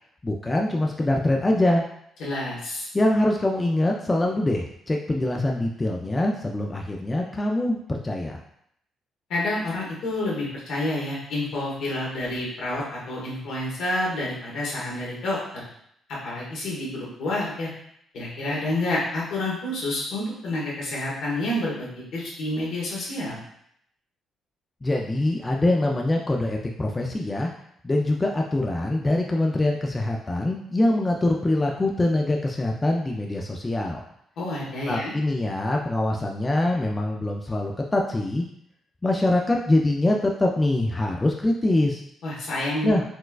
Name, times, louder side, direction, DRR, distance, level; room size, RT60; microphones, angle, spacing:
voice 1, 0.2-1.8 2.9-8.4 24.8-27.5 27.8-34.0 34.9-38.4 39.0-42.0 42.8-43.0, left 1 dB, 20° left, 0 dB, 0.4 m, -24 dB
voice 2, 2.2-2.9 9.3-15.6 16.2-17.7 18.1-23.4 34.4-35.1 42.2-42.9, left 1 dB, 80° left, -5 dB, 1.3 m, -29 dB
4.3 x 2.2 x 2.4 m, 0.71 s
cardioid pair, 90°, 0 cm